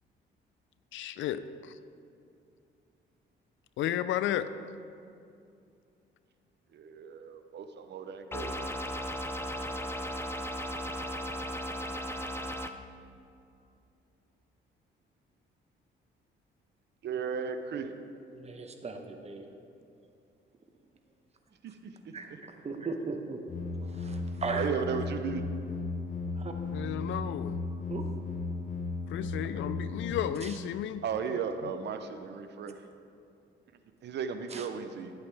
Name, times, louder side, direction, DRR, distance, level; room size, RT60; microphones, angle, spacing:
voice 1, 0.9-1.7 3.8-4.5 26.7-27.6 29.1-31.4, left 11 dB, 75° left, 13 dB, 0.4 m, -33 dB
voice 2, 6.7-8.8 17.0-17.9 21.6-21.8 22.0-22.1 24.5-25.4 31.0-32.8 34.0-35.1, right 6 dB, 60° right, 8 dB, 0.7 m, -35 dB
sound 1, 8.3-12.7, equal, 10° left, 0.5 m, -36 dB
voice 3, 18.3-19.5 22.1-23.4 23.8-24.7 26.3-26.5 27.9-28.1 30.4-30.6 34.5-34.7, right 4 dB, 35° right, 5 dB, 0.9 m, -38 dB
sound 2, 23.5-30.1, left 3 dB, 40° left, 1.0 m, -35 dB
10.5 x 7.9 x 3.4 m, 2.5 s
cardioid pair, 90°, 20 cm